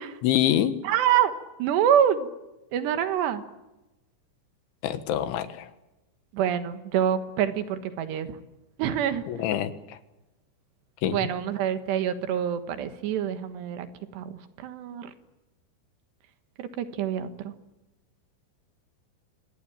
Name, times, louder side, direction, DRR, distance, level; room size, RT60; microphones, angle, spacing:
voice 1, 0.2-0.7 4.8-5.7 9.3-10.0 11.0-11.3, left 11 dB, 75° left, 10 dB, 3.7 m, -26 dB
voice 2, 0.8-1.3 1.6-2.3 2.7-3.4 6.3-8.3 8.8-9.2 11.1-13.9 14.1-15.1 16.6-17.5, right 9 dB, 70° right, 9 dB, 3.3 m, -26 dB
26.5 x 20.0 x 8.9 m, 1.0 s
omnidirectional pair, 5.6 m